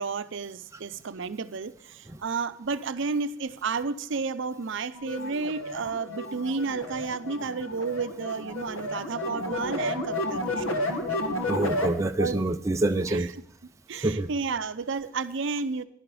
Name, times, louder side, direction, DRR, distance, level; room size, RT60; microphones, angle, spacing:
voice 1, 0.0-11.2 11.9-12.4 13.1-13.3 13.9-15.8, right 4 dB, 65° right, 0.6 m, -32 dB
sound 1, 4.9-11.9, left 1 dB, 80° left, 1.7 m, -32 dB
voice 2, 11.5-13.3 14.0-14.3, right 2 dB, 15° right, 0.4 m, -26 dB
11.0 x 11.0 x 4.8 m
head